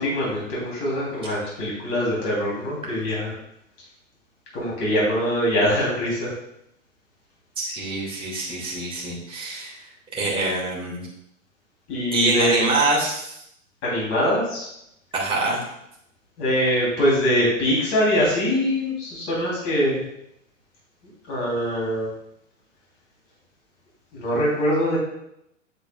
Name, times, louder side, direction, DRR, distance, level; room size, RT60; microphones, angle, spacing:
voice 1, 0.0-3.3 4.5-6.3 11.9-12.6 13.8-14.7 16.4-20.0 21.3-22.1 24.1-25.0, equal, 35° left, -4 dB, 3.0 m, -23 dB
voice 2, 7.6-11.0 12.1-13.4 15.1-15.6, right 2 dB, 15° right, -5 dB, 2.2 m, -25 dB
8.0 x 7.7 x 2.3 m, 0.76 s
figure-of-eight pair, 105°, 39 cm